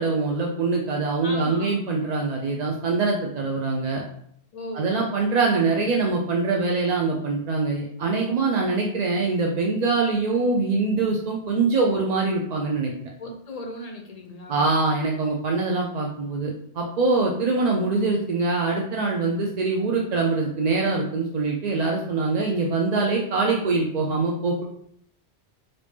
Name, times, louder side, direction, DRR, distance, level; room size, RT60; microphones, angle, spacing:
voice 1, 0.0-4.0 4.7-12.9 14.5-24.6, right 3 dB, 60° right, -1 dB, 0.4 m, -24 dB
voice 2, 1.2-1.8 4.5-4.9 13.2-14.7, left 1 dB, 55° left, 2 dB, 0.4 m, -37 dB
3.3 x 2.6 x 3.2 m, 0.67 s
omnidirectional pair, 1.1 m